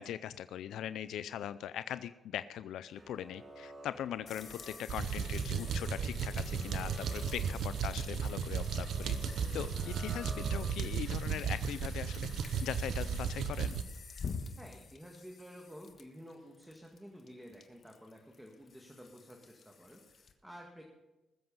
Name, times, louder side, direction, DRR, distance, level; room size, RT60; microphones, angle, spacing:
voice 1, 0.0-12.3 12.6-13.8, left 10 dB, 80° left, 14 dB, 0.4 m, -41 dB
sound 1, 2.9-11.1, right 2 dB, 30° right, 2.0 m, -53 dB
sound 2, 4.3-20.3, left 5 dB, 50° left, 1.4 m, -49 dB
sound 3, 4.9-13.8, right 6 dB, 70° right, 0.9 m, -35 dB
voice 2, 14.6-20.8, equal, 5° right, 1 dB, 1.9 m, -52 dB
20.0 x 7.9 x 5.4 m, 1.0 s
cardioid pair, 90°, 0 cm